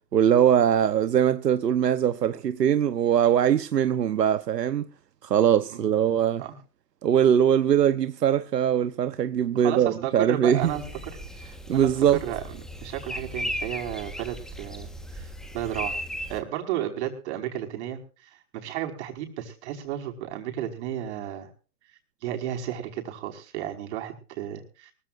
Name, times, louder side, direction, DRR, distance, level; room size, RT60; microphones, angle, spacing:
voice 1, 0.1-4.9 5.2-6.4 7.0-10.7 11.7-12.2, right 9 dB, 80° right, 1.1 m, -21 dB
voice 2, 9.5-14.9 15.1-15.3 15.5-16.0 16.3-18.0 18.5-21.5 22.2-24.9, right 11 dB, 45° right, 5.2 m, -33 dB
sound 1, 10.6-16.4, equal, ahead, 1.3 m, -36 dB
24.0 x 15.5 x 2.6 m
hypercardioid pair, 135°, 48 cm